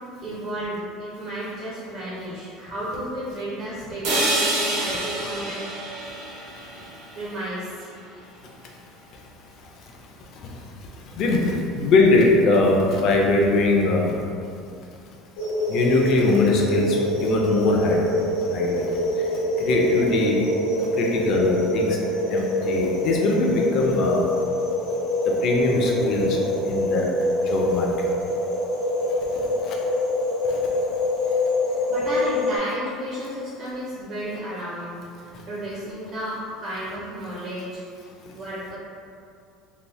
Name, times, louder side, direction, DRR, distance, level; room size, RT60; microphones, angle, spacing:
voice 1, 0.2-5.6 7.2-7.9 31.2-31.4 31.6-35.1 35.5-37.8 38.3-38.8, right 1 dB, 30° right, -7 dB, 0.4 m, -33 dB
sound 1, 4.0-8.1, right 1 dB, 85° right, 0.8 m, -28 dB
voice 2, 11.2-14.1 15.7-18.0 18.5-18.9 19.6-20.4 21.0-22.0 22.3-24.2 25.4-27.1 27.5-28.1 29.6-29.8 30.5-30.6, left 2 dB, 40° left, 0 dB, 0.3 m, -21 dB
sound 2, 15.4-32.6, left 1 dB, 85° left, 0.9 m, -25 dB
2.7 x 2.0 x 3.1 m, 2.4 s
cardioid pair, 180°, 0 cm